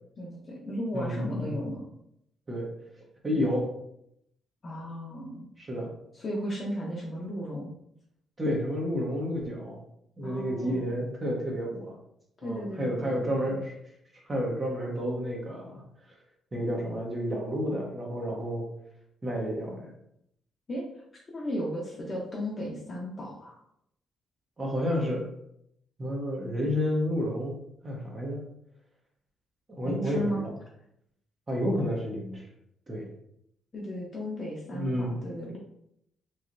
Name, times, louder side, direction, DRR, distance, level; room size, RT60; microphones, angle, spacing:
voice 1, 0.2-1.8 4.6-5.5 6.1-7.7 10.2-10.9 12.4-13.2 20.7-20.8 21.3-23.6 29.8-30.4 33.7-35.6, equal, 35° left, -4 dB, 0.7 m, -35 dB
voice 2, 0.9-1.6 2.5-2.7 3.2-3.7 5.6-5.9 8.4-9.8 10.2-11.9 12.4-13.8 14.3-15.8 16.5-18.7 19.2-19.9 24.6-25.3 26.0-27.5 27.8-28.4 29.8-30.5 31.5-32.5 32.9-33.1 34.7-35.1, equal, 30° right, -1 dB, 0.8 m, -30 dB
3.1 x 2.7 x 2.5 m, 0.75 s
cardioid pair, 90°, 0 cm